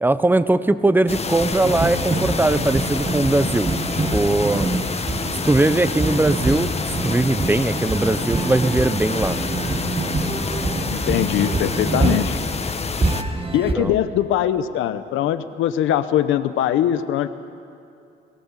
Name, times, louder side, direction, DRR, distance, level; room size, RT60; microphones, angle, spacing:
voice 1, 0.0-3.7 4.1-4.7 5.5-9.4 13.7-13.9, right 2 dB, 10° right, 13 dB, 0.9 m, -20 dB
sound 1, 1.1-13.2, left 4 dB, 30° left, 1.3 m, -28 dB
sound 2, 1.4-13.7, right 3 dB, 30° right, 2.1 m, -26 dB
voice 2, 10.9-12.4 13.5-17.3, left 11 dB, 90° left, 11 dB, 1.0 m, -21 dB
29.0 x 19.0 x 7.5 m, 2.5 s
cardioid pair, 90°, 20 cm